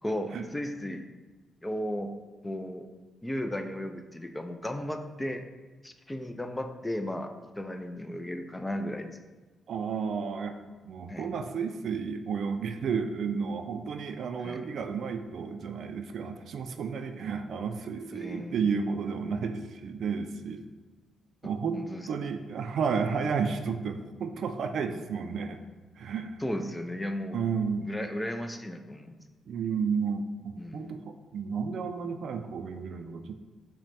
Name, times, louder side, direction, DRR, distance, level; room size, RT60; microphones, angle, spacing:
voice 1, 0.0-1.1 1.6-2.1 2.4-2.9 3.2-5.4 5.8-9.2 11.1-11.3 14.4-14.6 18.1-18.6 21.7-22.1 24.9-25.0 26.4-27.4 27.8-29.2 30.6-30.9, left 1 dB, 15° left, 6 dB, 0.4 m, -35 dB
voice 2, 9.7-10.6 10.9-20.6 21.4-21.8 22.1-25.6 26.0-26.4 27.3-27.9 29.5-33.3, right 5 dB, 70° right, 7 dB, 0.3 m, -32 dB
5.7 x 2.2 x 4.1 m, 1.3 s
cardioid pair, 65°, 0 cm